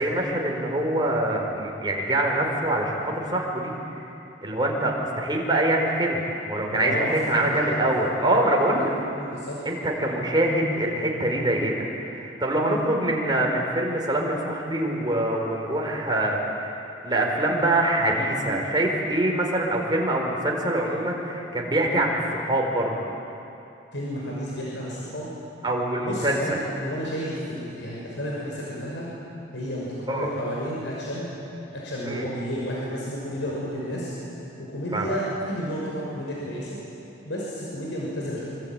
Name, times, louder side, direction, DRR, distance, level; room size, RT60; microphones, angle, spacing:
voice 1, 0.0-3.9 4.4-6.2 6.5-8.9 9.6-11.7 12.0-16.4 16.6-16.7 17.0-22.9 25.6-26.6 30.1-30.3 32.1-32.3 34.9-35.1, right 1 dB, 25° right, 0 dB, 4.6 m, -24 dB
voice 2, 6.7-7.8 8.3-8.7 9.1-9.6 23.9-25.3 26.0-29.1 29.5-31.3 31.7-34.1 34.6-36.8 37.3-38.4, equal, 75° left, -5 dB, 6.0 m, -31 dB
26.0 x 25.0 x 9.1 m, 2.8 s
head